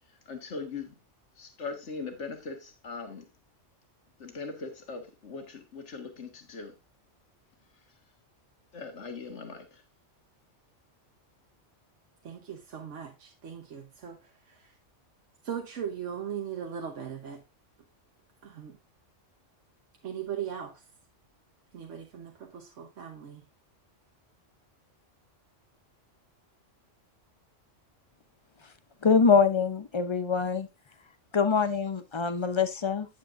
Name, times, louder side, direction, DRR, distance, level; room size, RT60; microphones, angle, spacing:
voice 1, 0.2-0.9 1.4-3.3 4.2-6.7 8.7-9.8, left 4 dB, 65° left, 1.8 m, -40 dB
voice 2, 12.2-14.8 15.4-17.4 18.4-18.8 20.0-20.9 21.7-23.5, right 8 dB, 75° right, 1.3 m, -39 dB
voice 3, 29.0-30.7 31.3-33.1, left 5 dB, 35° left, 0.5 m, -24 dB
9.4 x 8.7 x 2.5 m
omnidirectional pair, 1.3 m